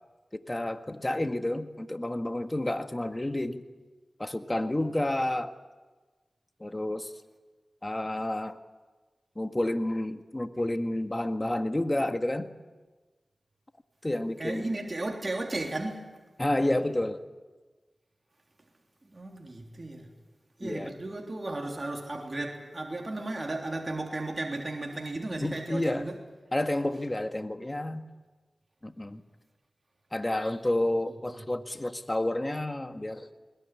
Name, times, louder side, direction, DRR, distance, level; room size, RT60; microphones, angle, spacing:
voice 1, 0.3-3.6 4.2-5.5 6.6-7.1 7.8-8.6 9.3-12.5 14.0-14.7 16.4-17.2 20.6-20.9 25.4-26.1 26.5-28.0 28.8-29.2 30.1-33.3, left 1 dB, 25° left, 7 dB, 1.8 m, -30 dB
voice 2, 14.4-16.1 19.1-20.1 20.6-26.2, right 2 dB, 40° right, 1 dB, 3.4 m, -34 dB
21.5 x 20.5 x 9.7 m, 1.3 s
cardioid pair, 50°, 0 cm